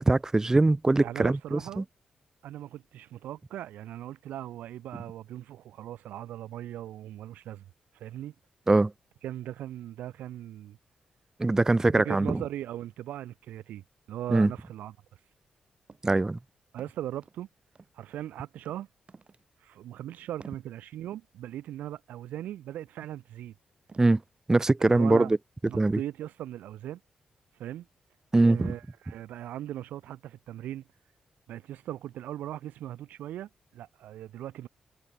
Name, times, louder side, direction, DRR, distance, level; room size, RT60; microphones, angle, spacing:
voice 1, 0.0-1.8 8.7-8.9 11.4-12.4 14.3-14.5 16.0-16.4 24.0-24.2 24.5-25.4 25.7-26.0 28.3-28.7, right 2 dB, 20° right, 0.3 m, -22 dB
voice 2, 1.0-1.9 2.4-7.6 7.9-8.3 9.2-10.8 11.9-14.9 16.7-17.5 17.9-18.9 19.6-23.5 24.8-25.3 25.7-27.0 27.5-27.9 28.4-30.8 31.5-34.7, right 12 dB, 85° right, 6.9 m, -39 dB
sound 1, 15.9-16.1 16.4-17.4 17.7-18.3 18.6-18.8 19.1-19.5 19.8-19.9 20.4-20.7 23.0-23.2 23.9-24.3 24.8-24.9 25.6-25.9, right 4 dB, 45° right, 6.2 m, -52 dB
supercardioid pair, 45°, 3 cm